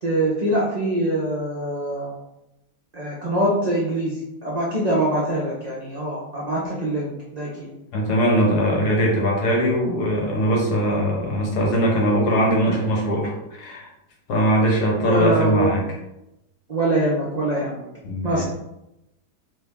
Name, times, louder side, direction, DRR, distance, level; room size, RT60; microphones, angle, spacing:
voice 1, 0.0-2.1 2.9-7.7 15.0-15.7 16.7-17.8 18.2-18.4, right 1 dB, 50° right, -5 dB, 0.5 m, -24 dB
voice 2, 7.9-13.9 14.3-15.8 18.0-18.4, equal, 70° left, -1 dB, 1.5 m, -21 dB
4.4 x 2.8 x 3.5 m, 0.88 s
omnidirectional pair, 1.9 m